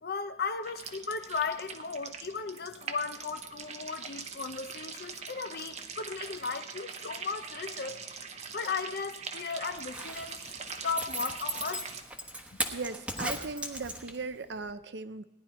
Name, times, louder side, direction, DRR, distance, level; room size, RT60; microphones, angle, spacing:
voice 1, 0.0-8.0 8.5-10.4 10.8-11.8, left 5 dB, 55° left, 9 dB, 0.7 m, -36 dB
sound 1, 0.6-12.0, right 5 dB, 35° right, 0.8 m, -43 dB
Zipper (clothing), 9.8-14.4 14.7-14.8, right 1 dB, 5° right, 1.0 m, -37 dB
voice 2, 12.7-15.2, right 4 dB, 65° right, 13 dB, 0.6 m, -38 dB
17.5 x 10.5 x 4.3 m, 1.1 s
head